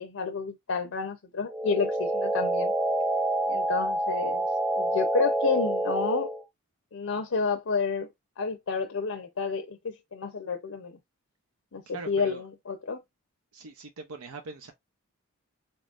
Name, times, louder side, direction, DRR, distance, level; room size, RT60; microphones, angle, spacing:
voice 1, 0.0-2.7 3.5-4.4 4.8-6.3 6.9-8.1 8.4-11.0 11.7-13.0, left 5 dB, 65° left, 0.6 m, -30 dB
sound 1, 1.5-6.4, right 1 dB, 5° right, 0.3 m, -27 dB
voice 2, 11.9-12.4 13.5-14.7, right 3 dB, 80° right, 0.6 m, -41 dB
4.0 x 3.6 x 2.4 m
head